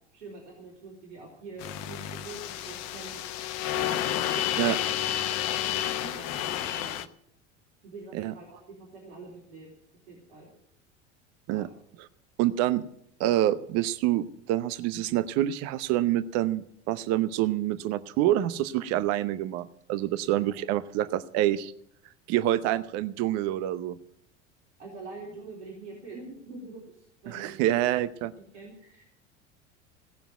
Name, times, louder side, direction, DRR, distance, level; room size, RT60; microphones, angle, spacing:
voice 1, 0.1-3.3 3.7-4.9 5.7-7.1 7.8-9.7 10.1-10.5 11.5-11.7 20.4-20.5 24.8-27.8 28.3-29.1, right 3 dB, 75° right, -4 dB, 4.1 m, -45 dB
sound 1, 1.6-7.1, left 11 dB, 45° left, 1.0 m, -30 dB
voice 2, 12.4-12.8 13.2-21.7 22.3-24.0 27.3-28.3, right 13 dB, 45° right, 15 dB, 0.8 m, -27 dB
17.5 x 7.0 x 9.3 m, 0.72 s
figure-of-eight pair, 75°, 36 cm